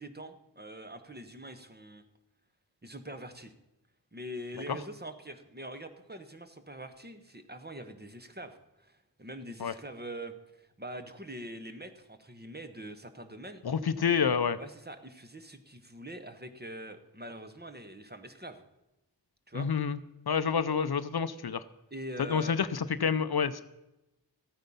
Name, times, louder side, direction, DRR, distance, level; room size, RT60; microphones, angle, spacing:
voice 1, 0.0-2.0 2.8-3.5 4.1-13.6 14.6-18.6 19.5-19.7 21.9-22.5, right 1 dB, 25° right, 8 dB, 1.1 m, -44 dB
voice 2, 13.6-14.6 19.5-20.0 20.3-21.6 22.2-23.6, left 6 dB, 60° left, 13 dB, 0.6 m, -28 dB
13.5 x 9.1 x 5.5 m, 0.96 s
wide cardioid pair, 60°, 43 cm